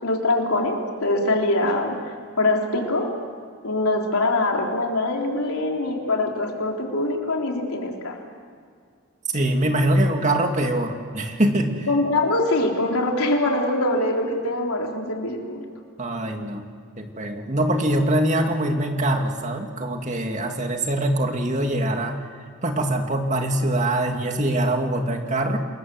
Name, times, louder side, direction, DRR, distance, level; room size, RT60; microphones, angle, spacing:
voice 1, 0.0-2.0 2.4-3.2 3.6-8.2 11.9-15.7, left 2 dB, 85° left, 1 dB, 3.9 m, -23 dB
voice 2, 9.3-11.9 16.0-16.6 17.0-22.2 22.6-25.6, right 1 dB, 35° right, 4 dB, 2.4 m, -23 dB
28.5 x 21.5 x 7.8 m, 2.1 s
head